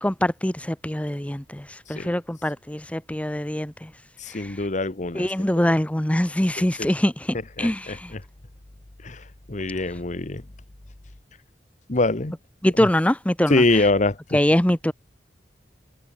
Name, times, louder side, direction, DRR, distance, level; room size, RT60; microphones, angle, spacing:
voice 1, 0.0-3.9 4.3-4.6 5.1-8.1 12.6-13.9 14.3-14.9, left 1 dB, 10° left, 0.8 m, -24 dB
voice 2, 4.2-5.6 6.6-6.9 7.6-8.2 9.0-10.4 11.9-12.3 12.8-12.9 13.5-14.4, left 2 dB, 45° left, 1.2 m, -25 dB
head